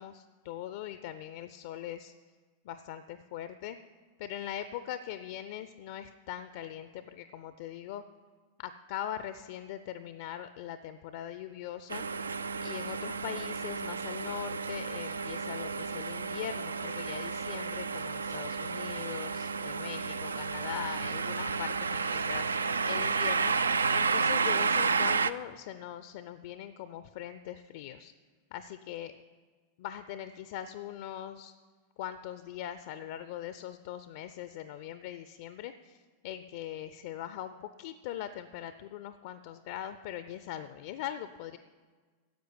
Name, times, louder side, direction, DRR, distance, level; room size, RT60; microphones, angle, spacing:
voice 1, 0.0-2.1 2.6-3.8 4.2-8.0 8.6-12.0 12.6-23.5 23.9-28.1 28.5-29.2 29.8-31.5 32.0-41.6, left 11 dB, 50° left, 12 dB, 0.5 m, -41 dB
sound 1, 11.9-25.3, right 5 dB, 75° right, 0.4 m, -31 dB
10.5 x 7.8 x 9.6 m, 1.5 s
figure-of-eight pair, 90°, 0 cm